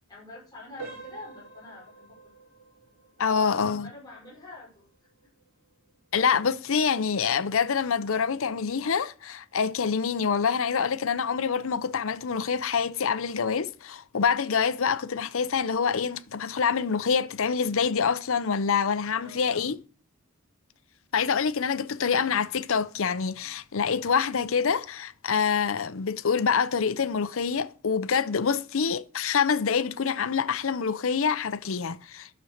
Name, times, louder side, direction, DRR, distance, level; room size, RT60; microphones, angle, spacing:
voice 1, 0.1-2.2 3.3-4.8 19.2-19.6, left 2 dB, 20° left, 5.5 m, -45 dB
sound 1, 0.8-11.4 11.8-12.0 12.6-12.7 13.2-13.4, right 4 dB, 60° right, 3.6 m, -51 dB
voice 2, 3.2-3.9 6.1-19.8 21.1-32.4, left 6 dB, 65° left, 0.6 m, -26 dB
10.0 x 7.0 x 6.4 m
head